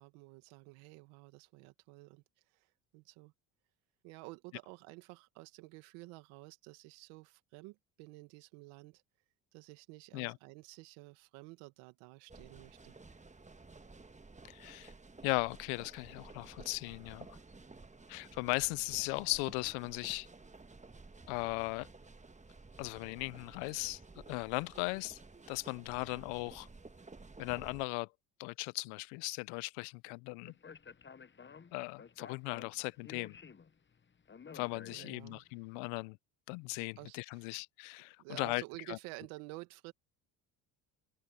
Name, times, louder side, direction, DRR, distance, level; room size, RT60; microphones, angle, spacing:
voice 1, 0.0-3.3 4.0-9.0 9.5-12.9 34.9-35.4 37.0-37.6 38.2-39.9, right 23 dB, 75° right, 1.9 m, -51 dB
sound 1, 12.3-27.8, right 3 dB, 15° right, 1.5 m, -54 dB
voice 2, 14.5-14.9 15.2-17.3 18.1-20.3 21.3-21.9 22.8-24.0 24.3-25.2 25.5-26.7 27.4-28.1 28.4-30.5 31.7-33.4 34.5-36.2 36.5-38.6 38.9-39.0, left 29 dB, 75° left, 0.8 m, -37 dB
Speech, 30.4-35.5, left 6 dB, 25° left, 1.1 m, -53 dB
open air
hypercardioid pair, 70°, 49 cm